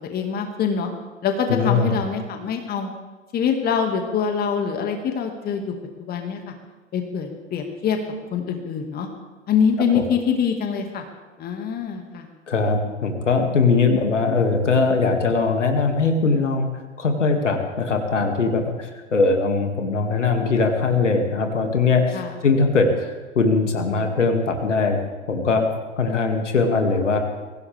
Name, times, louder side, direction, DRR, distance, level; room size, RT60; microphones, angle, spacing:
voice 1, 0.1-0.9 1.2-2.9 3.3-5.7 6.0-6.4 6.9-8.0 8.3-9.1 9.5-11.0 11.4-12.3 22.1-22.3, left 7 dB, 25° left, 4 dB, 2.1 m, -24 dB
voice 2, 1.5-2.0 9.9-10.1 12.5-16.7 17.0-25.0 25.3-25.6 26.0-27.2, left 4 dB, 70° left, 4 dB, 2.5 m, -21 dB
23.0 x 16.5 x 3.6 m, 1.3 s
figure-of-eight pair, 95°, 37 cm